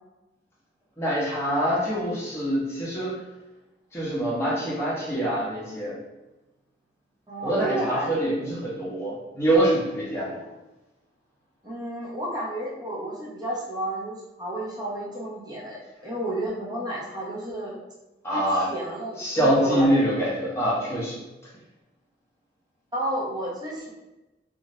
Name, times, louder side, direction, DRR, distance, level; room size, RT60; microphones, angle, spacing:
voice 1, 1.0-3.2 3.9-5.9 7.4-10.5 18.2-18.7 19.2-21.2, right 1 dB, 15° left, -6 dB, 0.8 m, -25 dB
voice 2, 7.3-8.1 11.6-17.8 18.3-19.9 22.9-23.9, right 1 dB, 25° right, -6 dB, 0.8 m, -31 dB
2.6 x 2.4 x 3.1 m, 1.0 s
head